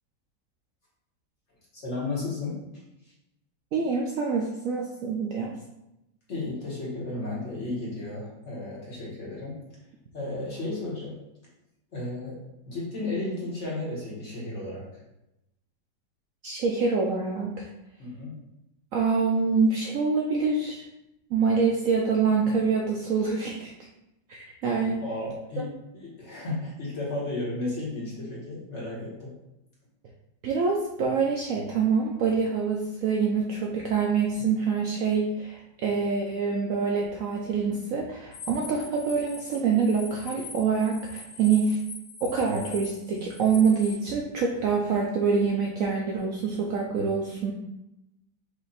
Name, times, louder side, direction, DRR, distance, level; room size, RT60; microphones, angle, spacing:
voice 1, 1.7-2.6 6.3-9.6 10.1-11.1 11.9-12.4 12.7-14.8 18.0-18.4 25.0-25.7 25.9-29.3, left 2 dB, 45° left, -6 dB, 1.6 m, -33 dB
voice 2, 3.7-5.5 16.4-17.7 18.9-20.8 21.3-23.7 24.3-25.0 30.4-41.8 42.2-47.5, right 5 dB, 70° right, -1 dB, 0.8 m, -25 dB
sound 1, 38.3-43.9, left 4 dB, 80° left, 1.8 m, -43 dB
4.9 x 2.5 x 4.0 m, 0.89 s
omnidirectional pair, 1.9 m